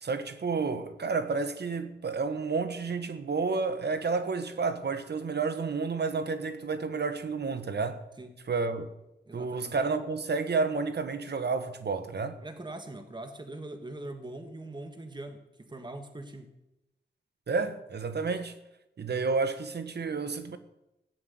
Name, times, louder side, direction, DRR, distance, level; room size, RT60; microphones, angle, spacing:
voice 1, 0.0-8.0 8.5-8.9 9.3-12.4 17.5-18.6 19.0-20.6, right 4 dB, 70° right, 1.4 m, -30 dB
voice 2, 9.3-9.7 12.4-16.5, right 2 dB, 25° right, 1.7 m, -42 dB
15.5 x 7.6 x 9.4 m
cardioid pair, 70°, 18 cm